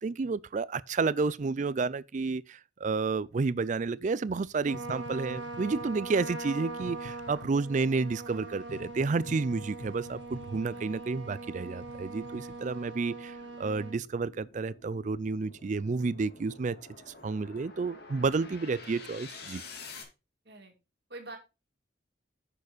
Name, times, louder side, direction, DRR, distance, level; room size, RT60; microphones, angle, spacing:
voice 1, 0.0-16.8 17.1-19.6, right 4 dB, 40° right, 0.4 m, -31 dB
sound 1, 4.3-12.8, left 2 dB, 85° left, 1.1 m, -49 dB
Trumpet, 4.6-14.0, right 3 dB, 75° right, 1.7 m, -41 dB
sound 2, 6.7-20.0, left 4 dB, 55° left, 2.5 m, -51 dB
voice 2, 10.7-11.0 20.4-20.7 21.1-21.4, right 2 dB, 60° right, 2.3 m, -45 dB
9.8 x 6.8 x 4.1 m
head